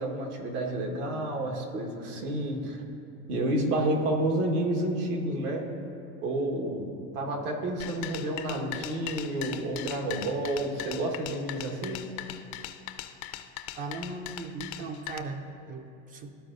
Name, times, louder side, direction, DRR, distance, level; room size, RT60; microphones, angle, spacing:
voice 1, 0.0-2.8 3.3-5.6 6.2-12.0, right 1 dB, 75° right, 1 dB, 1.5 m, -30 dB
sound 1, 7.8-15.2, left 13 dB, 70° left, 0.6 m, -39 dB
voice 2, 13.8-16.3, right 3 dB, 20° right, 7 dB, 0.4 m, -38 dB
13.0 x 4.6 x 2.5 m, 2.7 s
hypercardioid pair, 110°, 46 cm